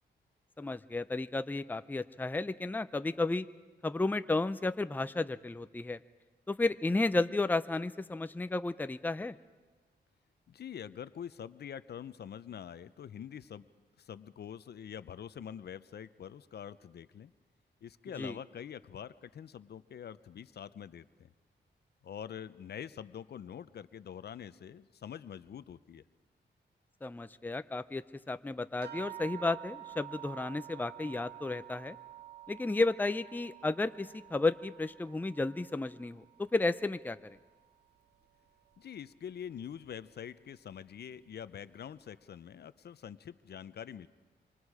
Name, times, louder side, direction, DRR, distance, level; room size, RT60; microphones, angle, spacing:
voice 1, 0.6-3.5 3.8-6.0 6.5-9.4 18.2-18.4 27.0-32.0 32.5-36.2 36.5-37.4, left 2 dB, 10° left, 12 dB, 0.6 m, -33 dB
voice 2, 10.5-13.7 14.0-17.3 17.8-21.3 22.0-26.0 38.8-44.1, left 8 dB, 65° left, 15 dB, 0.7 m, -45 dB
sound 1, 28.8-37.6 38.0-38.8 39.6-39.7 40.1-40.3, right 14 dB, 65° right, 1.5 m, -50 dB
26.5 x 25.0 x 4.9 m, 1.3 s
cardioid pair, 90°, 18 cm